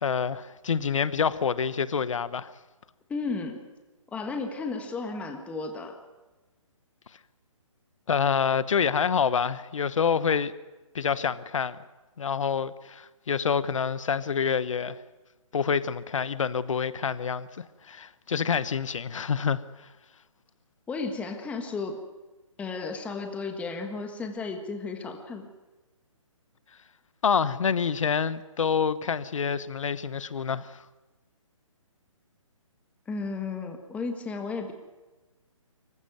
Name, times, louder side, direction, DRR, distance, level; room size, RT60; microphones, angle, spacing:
voice 1, 0.0-2.5 8.1-10.5 10.9-11.8 12.2-15.0 15.5-17.5 17.9-19.6 27.2-30.8, left 6 dB, 65° left, 1.1 m, -27 dB
voice 2, 3.1-3.6 4.1-6.0 20.9-22.0 22.6-25.5 33.1-34.7, left 4 dB, 10° left, 1.5 m, -33 dB
24.5 x 16.0 x 9.3 m
hypercardioid pair, 145°, 17 cm